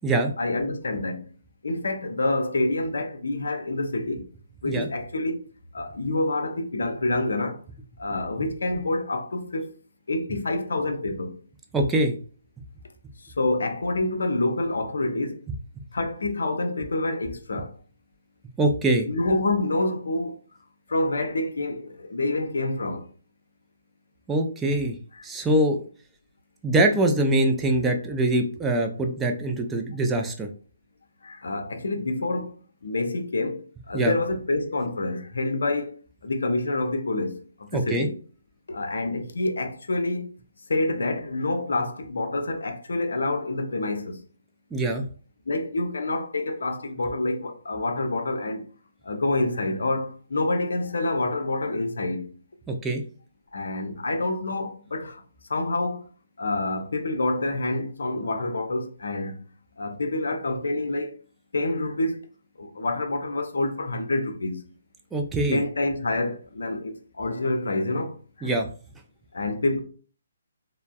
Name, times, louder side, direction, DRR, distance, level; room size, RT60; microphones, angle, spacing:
voice 1, 0.4-1.3 1.6-4.2 4.6-5.4 5.7-7.6 8.0-9.7 10.1-11.4 13.2-15.4 15.9-17.7 19.0-20.4 20.9-23.0 25.2-25.3 31.2-32.5 32.8-36.0 36.2-38.2 38.7-40.3 40.7-44.2 45.5-48.6 49.0-52.3 53.5-55.2 55.5-56.0 56.4-59.4 59.8-61.1 61.5-62.2 62.6-64.6 65.5-68.5 69.3-69.8, left 2 dB, 65° left, 0.5 m, -27 dB
voice 2, 11.7-12.2 18.6-19.1 24.3-25.0 25.2-25.8 26.6-30.5 33.9-34.1 37.7-38.1 44.7-45.0 52.7-53.0 65.1-65.6 68.4-68.7, right 1 dB, 10° right, 0.4 m, -23 dB
3.3 x 2.0 x 2.3 m
figure-of-eight pair, 135°, 0 cm